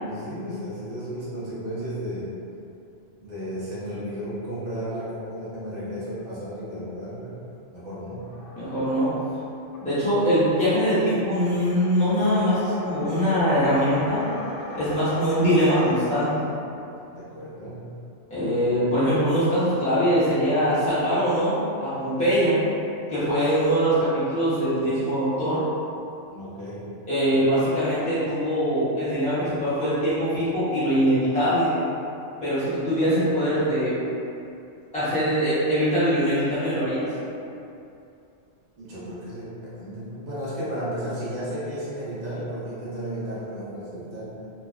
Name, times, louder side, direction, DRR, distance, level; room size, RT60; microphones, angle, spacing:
voice 1, 0.0-2.3 3.2-7.4 7.7-8.3 17.1-17.9 26.3-27.0 38.8-44.5, equal, 45° right, -9 dB, 0.7 m, -34 dB
sound 1, 8.2-16.5, left 1 dB, 70° left, 0.8 m, -40 dB
voice 2, 8.6-9.1 9.8-14.2 14.7-16.4 18.3-22.5 23.1-25.6 27.1-31.7 32.4-33.9 34.9-37.1, equal, 5° left, -14 dB, 0.8 m, -22 dB
3.0 x 2.2 x 2.4 m, 2.6 s
omnidirectional pair, 1.2 m